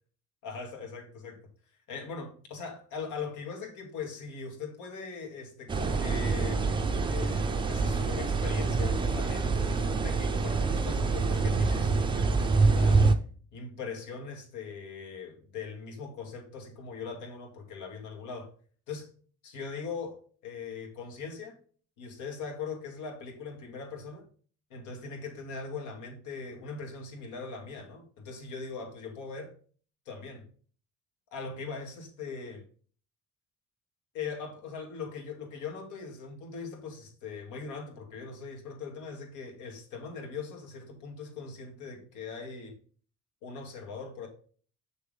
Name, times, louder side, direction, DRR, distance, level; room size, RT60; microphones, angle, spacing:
voice 1, 0.4-1.4 1.9-6.7 7.1-13.1 13.5-18.5 18.9-19.1 19.4-21.6 22.0-24.3 24.7-29.5 30.1-30.4 31.3-32.6 34.1-42.8 43.4-44.3, left 5 dB, 80° left, 2.4 m, -40 dB
sound 1, 5.7-13.1, right 4 dB, 15° right, 0.5 m, -26 dB
6.9 x 6.6 x 3.8 m
cardioid pair, 170°, 31 cm